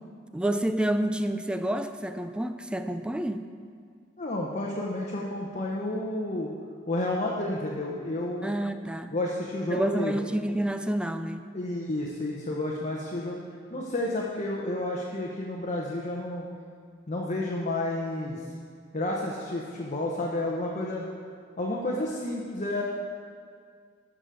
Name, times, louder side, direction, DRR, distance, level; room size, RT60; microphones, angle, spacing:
voice 1, 0.3-3.4 8.4-9.1 9.7-11.5, right 1 dB, 5° right, 8 dB, 0.4 m, -29 dB
voice 2, 4.2-6.5 6.9-8.5 9.1-10.2 11.5-13.4 13.7-16.5 17.1-18.4 18.9-21.0 21.6-22.8, left 1 dB, 40° left, -2 dB, 1.0 m, -31 dB
13.5 x 5.0 x 6.8 m, 2.1 s
head